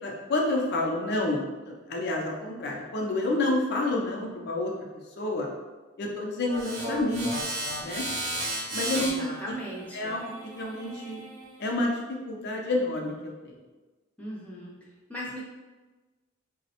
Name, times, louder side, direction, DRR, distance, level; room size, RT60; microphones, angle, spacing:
voice 1, 0.0-4.7 5.2-5.5 6.0-7.3 7.8-8.0 8.7-9.3 9.9-11.2 11.6-13.5, left 2 dB, 55° left, -1 dB, 0.5 m, -29 dB
sound 1, 6.5-11.6, right 1 dB, 70° right, 0.8 m, -35 dB
voice 2, 8.9-10.2 14.2-14.7 15.1-15.5, equal, 5° left, -6 dB, 0.6 m, -38 dB
4.4 x 2.0 x 2.8 m, 1.2 s
head